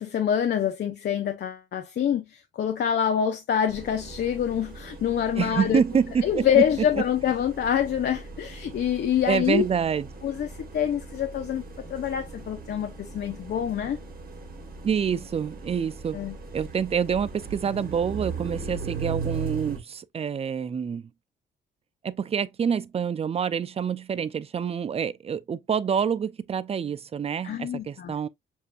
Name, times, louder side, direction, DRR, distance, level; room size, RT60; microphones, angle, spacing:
voice 1, 0.0-5.8 6.2-9.7 10.2-10.5 10.7-11.6 11.9-14.0 16.1-16.3 27.4-28.1, left 9 dB, 55° left, 0.8 m, -26 dB
sound 1, 3.7-19.8, right 4 dB, 50° right, 1.7 m, -39 dB
voice 2, 5.4-6.6 9.2-10.1 14.8-16.2 16.5-21.1 22.0-28.3, right 7 dB, 30° right, 0.4 m, -27 dB
7.0 x 2.7 x 2.4 m
cardioid pair, 90°, 20 cm